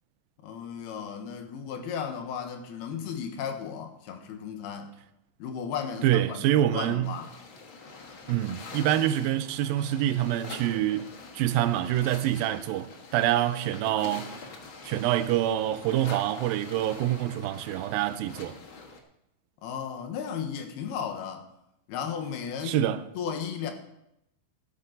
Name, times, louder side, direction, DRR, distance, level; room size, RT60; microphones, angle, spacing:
voice 1, 0.4-4.9 5.4-7.3 19.6-21.4 21.9-22.8 23.1-23.7, left 7 dB, 85° left, 3.2 m, -35 dB
voice 2, 6.0-7.1 8.3-14.4 14.8-18.6 22.6-23.1, right 12 dB, 80° right, 2.3 m, -26 dB
sound 1, 7.0-19.0, left 3 dB, 60° left, 1.3 m, -45 dB
12.5 x 12.0 x 4.0 m
omnidirectional pair, 4.4 m